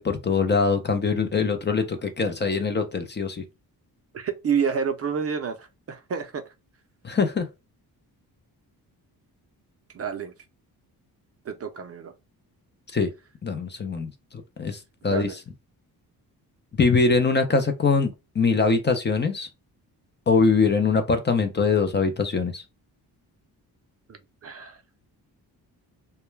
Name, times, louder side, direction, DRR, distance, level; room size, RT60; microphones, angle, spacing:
voice 1, 0.0-3.4 7.0-7.5 12.9-13.1 13.4-14.1 14.6-15.3 16.8-19.5 20.3-22.6, left 4 dB, 30° left, 0.5 m, -23 dB
voice 2, 4.1-6.4 9.9-10.3 11.5-12.1 15.0-15.4 24.4-24.8, right 6 dB, 40° right, 0.5 m, -29 dB
2.2 x 2.2 x 3.1 m
cardioid pair, 90°, 38 cm